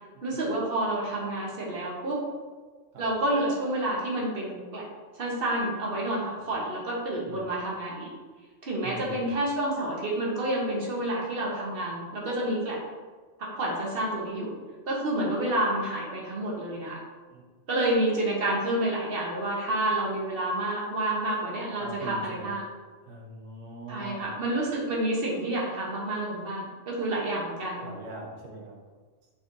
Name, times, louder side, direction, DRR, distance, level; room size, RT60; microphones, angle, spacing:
voice 1, 0.2-2.2 3.0-4.8 5.2-8.1 8.6-12.8 13.4-14.5 14.9-17.0 17.7-22.6 23.9-27.9, right 1 dB, 50° right, -3 dB, 1.0 m, -29 dB
voice 2, 7.3-7.6 8.8-9.3 17.3-17.4 21.8-22.6 23.0-24.3 27.8-28.8, right 2 dB, 80° right, -3 dB, 1.3 m, -42 dB
4.1 x 3.7 x 2.5 m, 1.4 s
omnidirectional pair, 1.3 m